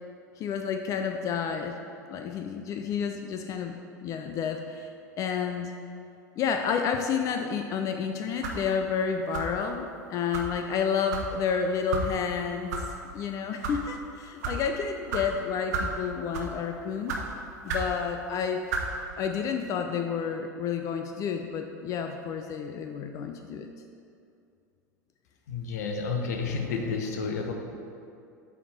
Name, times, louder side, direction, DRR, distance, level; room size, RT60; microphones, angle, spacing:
voice 1, 0.4-1.8 2.1-4.9 5.2-5.7 6.4-12.7 13.1-17.2 17.6-18.6 19.2-23.7, left 6 dB, 35° left, 5 dB, 0.4 m, -30 dB
sound 1, 8.4-8.7 9.3-9.6 10.3-10.5 11.1-11.3 11.9-12.1 12.7-12.8 13.5-13.8 14.4-14.6 15.1-15.2 15.7-15.9 16.3-16.6 17.1-17.2 17.7-17.9 18.7-18.9, right 3 dB, 60° right, 0.8 m, -31 dB
voice 2, 25.5-27.5, left 5 dB, 60° left, 3 dB, 0.8 m, -30 dB
8.4 x 3.5 x 4.2 m, 2.5 s
figure-of-eight pair, 80°, 10 cm